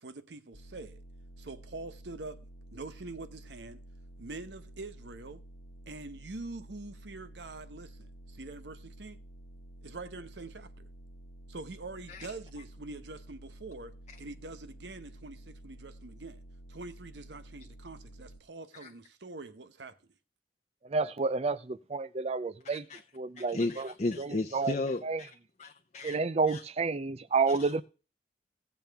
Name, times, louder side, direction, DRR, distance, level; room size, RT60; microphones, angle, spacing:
voice 1, 0.0-1.0 1.4-2.4 2.7-3.8 4.2-5.4 5.9-9.2 9.8-10.9 11.5-16.4 16.7-20.0, right 3 dB, 75° right, 0.9 m, -44 dB
sound 1, 0.5-18.4, right 1 dB, 80° left, 1.2 m, -51 dB
voice 2, 20.8-22.9 23.1-23.9 24.2-24.8 25.0-25.2 26.0-27.8, right 4 dB, 35° right, 0.5 m, -30 dB
voice 3, 22.6-23.0 23.4-26.2 26.5-26.6 27.5-27.8, left 2 dB, 40° left, 0.7 m, -35 dB
17.0 x 7.1 x 3.5 m
head